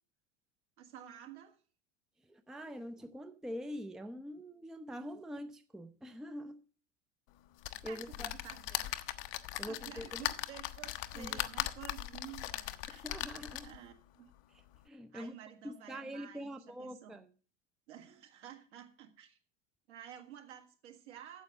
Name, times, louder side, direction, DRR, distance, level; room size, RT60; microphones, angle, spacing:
voice 1, 0.8-1.6 7.8-8.9 9.7-13.1 13.6-14.3 15.1-17.2 17.9-19.4 19.9-21.4, right 10 dB, 65° right, 1.9 m, -51 dB
voice 2, 2.2-6.6 7.8-8.3 9.6-10.3 11.2-11.4 12.9-13.7 14.5-15.4 15.6-17.3, equal, ahead, 0.5 m, -44 dB
sound 1, 7.6-13.8 14.4-14.5 14.7-14.8, left 15 dB, 50° left, 0.8 m, -39 dB
9.1 x 7.5 x 6.5 m
figure-of-eight pair, 75°, 37 cm